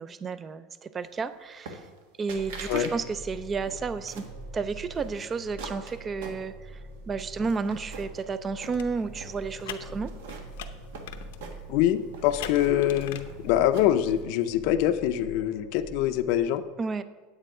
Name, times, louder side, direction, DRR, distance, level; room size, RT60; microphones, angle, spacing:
voice 1, 0.0-1.8 2.2-4.2 4.5-6.8 7.1-10.1 16.8-17.0, right 4 dB, 15° right, 14 dB, 0.3 m, -32 dB
sound 1, 1.7-2.0 2.3-2.9 3.3-4.4 4.9-6.8 7.2-8.2 8.6-9.3 9.8-11.9 12.1-14.1, right 4 dB, 85° right, 1.4 m, -44 dB
sound 2, 2.3-16.4, right 2 dB, 35° right, 3.4 m, -44 dB
sound 3, 8.6-14.2, left 11 dB, 85° left, 0.7 m, -44 dB
voice 2, 11.7-16.6, left 12 dB, 50° left, 9 dB, 0.5 m, -24 dB
9.1 x 8.3 x 4.8 m, 1.4 s
supercardioid pair, 175°, 0 cm